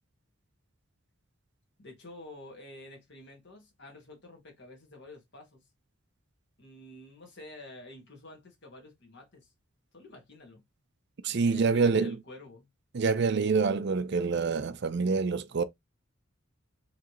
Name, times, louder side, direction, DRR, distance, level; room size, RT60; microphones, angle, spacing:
voice 1, 1.8-5.6 6.6-9.5 9.9-10.6 11.3-12.7, left 2 dB, 55° left, 1.7 m, -49 dB
voice 2, 11.2-12.2 12.9-15.6, right 4 dB, 55° right, 0.5 m, -26 dB
4.8 x 3.2 x 3.0 m
head